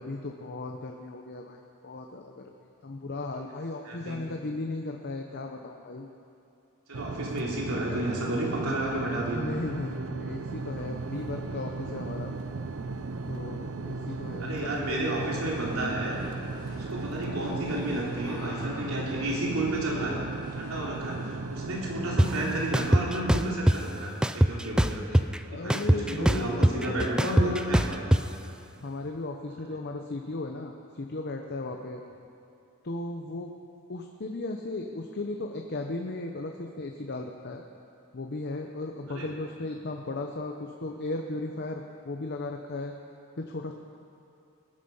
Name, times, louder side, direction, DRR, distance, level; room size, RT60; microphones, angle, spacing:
voice 1, 0.0-6.1 9.3-12.3 13.3-15.4 20.9-21.0 25.5-27.6 28.8-32.0 32.8-33.5 33.9-37.6 38.1-42.9 43.4-43.7, left 2 dB, 50° left, 3 dB, 0.8 m, -36 dB
voice 2, 3.8-4.3 6.9-9.5 14.4-16.2 16.7-20.2 20.5-25.3 25.5-28.3 39.2-39.3, right 1 dB, 90° right, -4 dB, 3.3 m, -31 dB
sound 1, 6.9-23.2, right 3 dB, 65° right, 0.5 m, -36 dB
sound 2, 10.3-22.1, left 1 dB, 20° left, 2.2 m, -50 dB
sound 3, 22.2-22.3 22.7-23.8 24.2-25.4 25.7-28.2, equal, 5° right, 0.3 m, -22 dB
20.0 x 10.0 x 5.5 m, 2.6 s
head